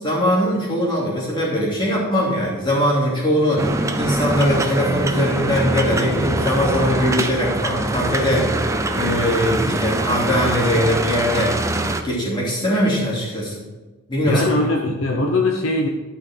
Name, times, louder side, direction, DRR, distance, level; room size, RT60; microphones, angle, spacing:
voice 1, 0.0-8.6 8.9-11.6 12.0-13.5 14.1-14.4, equal, 20° left, -5 dB, 2.9 m, -21 dB
sound 1, 3.6-12.0, right 2 dB, 15° right, 0.5 m, -23 dB
voice 2, 14.2-15.9, left 2 dB, 60° left, 2 dB, 0.9 m, -20 dB
11.5 x 6.0 x 4.4 m, 1.2 s
head